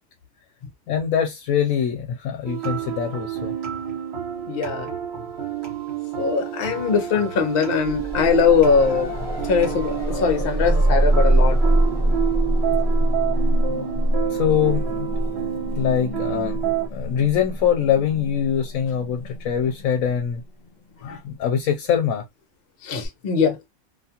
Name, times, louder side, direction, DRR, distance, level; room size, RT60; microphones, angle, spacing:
voice 1, 0.9-3.5 14.3-15.1 15.8-16.6 16.9-20.4 21.0-22.2, left 9 dB, 75° left, 1.0 m, -23 dB
sound 1, 2.4-16.9, right 10 dB, 50° right, 1.2 m, -29 dB
voice 2, 4.5-4.9 6.2-9.1 9.5-11.6 22.8-23.6, left 5 dB, 50° left, 0.8 m, -21 dB
sound 2, 7.8-20.7 23.0-23.1, right 1 dB, 25° left, 1.3 m, -24 dB
2.5 x 2.3 x 2.8 m
omnidirectional pair, 1.4 m